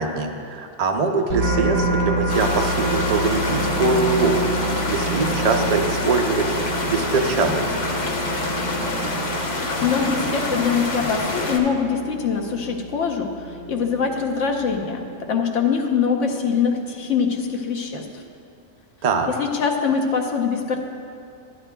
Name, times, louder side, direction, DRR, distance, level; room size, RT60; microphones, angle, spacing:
voice 1, 0.0-4.4 4.9-6.5 6.9-7.6 19.0-19.3, right 4 dB, 45° right, 3 dB, 0.5 m, -22 dB
sound 1, 1.3-14.7, right 1 dB, 70° right, 1.4 m, -32 dB
sound 2, 1.4-16.6 17.1-17.5, right 2 dB, 30° right, 2.7 m, -31 dB
sound 3, 2.3-11.6, left 2 dB, 40° left, 0.9 m, -26 dB
voice 2, 9.8-18.2 19.3-20.8, left 6 dB, 75° left, 3 dB, 1.1 m, -23 dB
12.0 x 11.0 x 2.2 m, 2.4 s
omnidirectional pair, 1.3 m